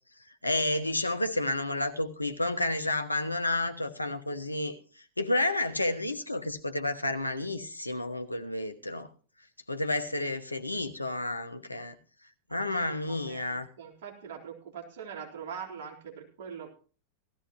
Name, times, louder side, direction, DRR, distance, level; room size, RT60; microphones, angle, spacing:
voice 1, 0.4-4.8 5.2-9.1 9.7-12.0 12.5-13.7, left 2 dB, 85° left, 1.0 m, -30 dB
voice 2, 12.6-16.7, right 7 dB, 55° right, 3.7 m, -43 dB
18.0 x 14.0 x 3.0 m
figure-of-eight pair, 90°, 0 cm